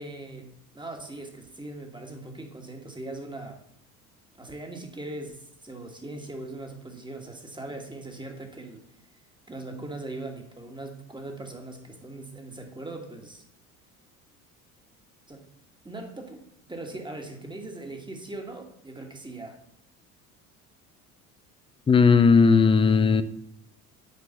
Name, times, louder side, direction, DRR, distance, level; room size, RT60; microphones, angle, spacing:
voice 1, 0.0-3.6 4.4-8.8 9.5-13.4 15.3-15.4 15.8-19.6, right 2 dB, 10° right, 3 dB, 1.4 m, -40 dB
voice 2, 21.9-23.2, left 5 dB, 15° left, 12 dB, 0.4 m, -17 dB
6.8 x 4.6 x 6.8 m, 0.71 s
figure-of-eight pair, 65°, 44 cm